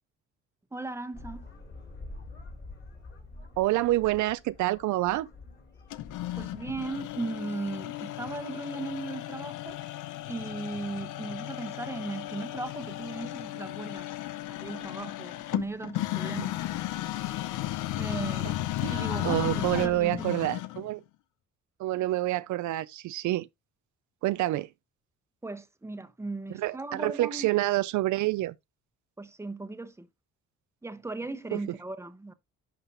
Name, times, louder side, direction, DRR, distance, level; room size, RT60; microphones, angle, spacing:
voice 1, 0.7-1.5 6.4-9.8 10.3-14.1 14.5-16.6 18.0-20.4 25.4-27.6 29.2-30.1 30.8-32.3, right 3 dB, 10° right, 1.0 m, -37 dB
sound 1, 1.1-7.0, left 2 dB, 35° left, 3.0 m, -47 dB
voice 2, 3.6-5.3 18.8-21.0 21.8-23.5 24.2-24.7 26.5-28.5 31.5-31.6, right 16 dB, 75° right, 0.4 m, -27 dB
sound 2, 5.9-20.9, left 15 dB, 85° left, 0.6 m, -35 dB
11.0 x 5.4 x 2.6 m
cardioid pair, 90°, 30 cm